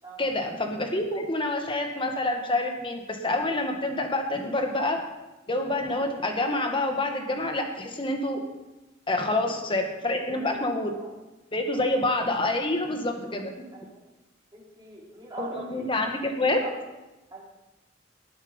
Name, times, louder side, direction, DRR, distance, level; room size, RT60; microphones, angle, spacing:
voice 1, 0.2-5.0 5.5-8.4 9.1-10.9 11.5-13.5 15.4-16.6, left 2 dB, 30° left, 4 dB, 1.7 m, -27 dB
voice 2, 9.3-9.8 10.1-11.1 11.7-12.0 13.7-14.0 14.5-15.8 16.4-16.7 17.3-17.4, right 2 dB, 20° right, -5 dB, 4.5 m, -42 dB
19.0 x 8.1 x 5.3 m, 1.0 s
head